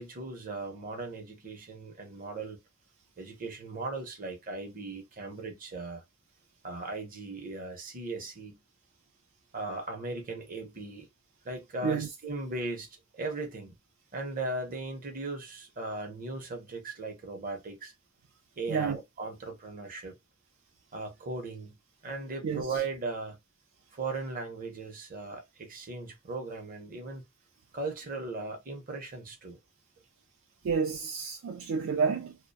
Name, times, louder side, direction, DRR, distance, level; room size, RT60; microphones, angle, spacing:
voice 1, 0.0-2.6 3.2-6.0 6.6-8.6 9.5-11.1 11.4-13.8 14.1-17.9 18.6-20.1 20.9-21.8 22.0-23.4 23.9-27.2 27.7-29.6, right 3 dB, 40° right, 0.7 m, -38 dB
voice 2, 30.6-32.4, right 5 dB, 65° right, 0.3 m, -30 dB
2.4 x 2.1 x 2.6 m
head